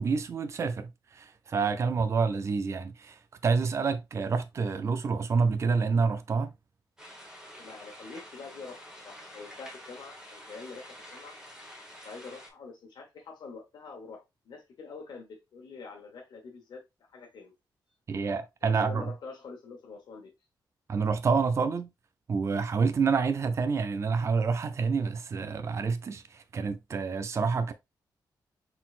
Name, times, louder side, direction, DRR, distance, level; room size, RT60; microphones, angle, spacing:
voice 1, 0.0-6.5 18.1-19.1 20.9-21.9 22.3-27.7, right 5 dB, 40° right, 0.4 m, -28 dB
sound 1, 7.0-12.5, equal, 10° right, 1.3 m, -48 dB
voice 2, 7.6-11.4 11.7-16.8 17.1-17.5 18.6-20.3, left 4 dB, 75° left, 1.1 m, -46 dB
4.0 x 3.9 x 2.4 m
wide cardioid pair, 145°, 8 cm